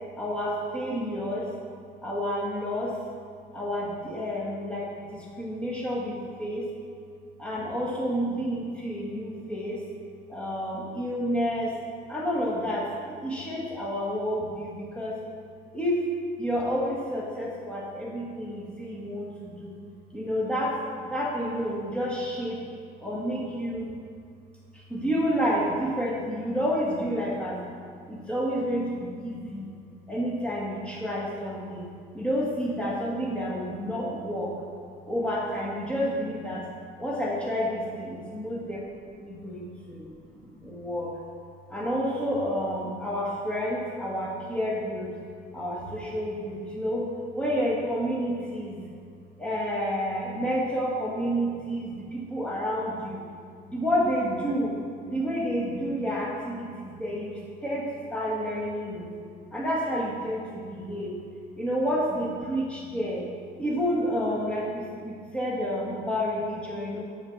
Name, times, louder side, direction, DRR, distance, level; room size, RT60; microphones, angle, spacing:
voice 1, 0.2-1.5 2.0-2.9 3.5-6.7 7.4-9.8 10.3-11.7 12.1-15.2 15.7-16.0 16.4-19.8 20.1-20.7 21.0-22.6 23.0-23.9 24.7-27.6 28.1-29.7 30.1-31.9 32.1-34.5 35.1-36.6 37.0-38.8 39.2-40.1 40.4-41.1 41.7-45.1 45.5-47.1 47.3-48.8 49.4-53.2 53.7-54.8 55.0-59.1 59.5-61.1 61.6-63.2 63.6-67.0, equal, 5° left, -5 dB, 1.9 m, -29 dB
7.3 x 4.3 x 6.7 m, 2.3 s
cardioid pair, 110°, 17 cm